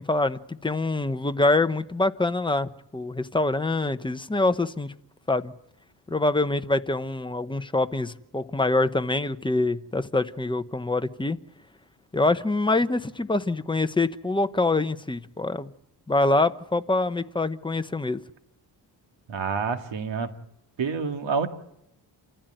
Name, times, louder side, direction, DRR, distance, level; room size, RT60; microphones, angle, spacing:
voice 1, 0.0-5.0 5.3-5.5 6.1-11.4 12.1-15.7 16.1-18.2, left 2 dB, 10° left, 0.9 m, -25 dB
voice 2, 19.3-20.3 20.8-21.5, right 5 dB, 75° right, 2.2 m, -27 dB
28.0 x 15.0 x 9.1 m
wide cardioid pair, 135°, 45 cm